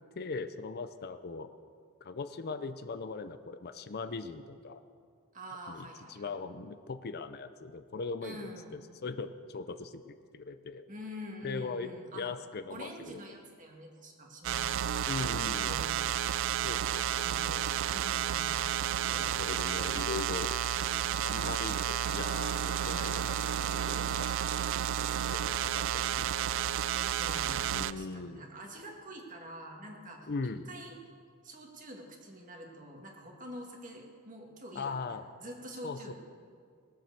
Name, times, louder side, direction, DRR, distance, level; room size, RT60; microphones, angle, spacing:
voice 1, 0.2-1.5 2.0-4.8 5.7-10.9 11.4-13.2 15.1-15.8 16.6-17.7 19.1-20.5 21.2-24.3 24.6-24.7 25.3-26.8 27.6-28.4 30.3-30.6 34.7-35.2 35.8-36.1, left 4 dB, 45° left, 10 dB, 0.5 m, -40 dB
voice 2, 5.3-6.4 8.2-8.8 10.9-12.4 12.7-14.9 15.2-16.1 17.1-17.5 17.9-18.5 19.0-19.5 26.9-30.3 30.7-30.9 31.4-36.1, equal, 35° right, 1 dB, 2.0 m, -46 dB
sound 1, 14.4-27.9, right 10 dB, 60° right, 0.3 m, -31 dB
20.0 x 7.6 x 6.9 m, 2.2 s
head